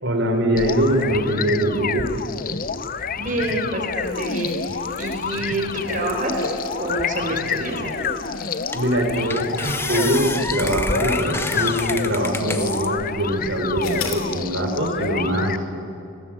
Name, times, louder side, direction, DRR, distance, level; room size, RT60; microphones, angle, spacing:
voice 1, 0.0-2.1 8.7-15.6, right 1 dB, 55° right, 3 dB, 4.3 m, -22 dB
sound 1, 0.6-15.6, left 6 dB, 40° left, 0.7 m, -29 dB
voice 2, 3.2-4.6 5.0-6.4 6.7-8.1, right 1 dB, 40° right, 2 dB, 5.0 m, -27 dB
sound 2, 3.3-11.7 12.3-12.4 13.8-14.3, left 4 dB, 70° left, 3.1 m, -37 dB
sound 3, 8.1-8.2 8.7-9.0 9.3-12.9 13.4-14.1, left 2 dB, 10° left, 1.1 m, -29 dB
29.5 x 20.5 x 9.0 m, 2.7 s
head